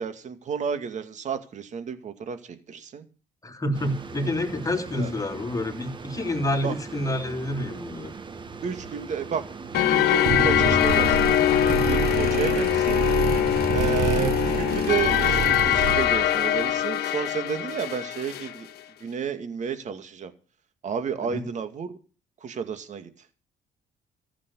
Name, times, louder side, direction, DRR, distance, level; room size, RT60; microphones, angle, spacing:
voice 1, 0.0-3.0 4.9-5.1 6.6-6.7 8.6-13.0 13.7-18.7 19.0-20.3 20.8-21.9 22.4-23.1, right 7 dB, 45° right, 9 dB, 2.3 m, -31 dB
voice 2, 3.4-8.1 21.3-21.4, left 1 dB, 20° left, 4 dB, 3.5 m, -28 dB
sound 1, 3.7-15.8, right 4 dB, 30° right, 1.4 m, -40 dB
sound 2, 9.7-18.5, left 11 dB, 70° left, 1.5 m, -23 dB
sound 3, 10.3-16.3, right 7 dB, 70° right, 1.6 m, -28 dB
14.5 x 7.5 x 8.4 m, 0.37 s
cardioid pair, 110°, 17 cm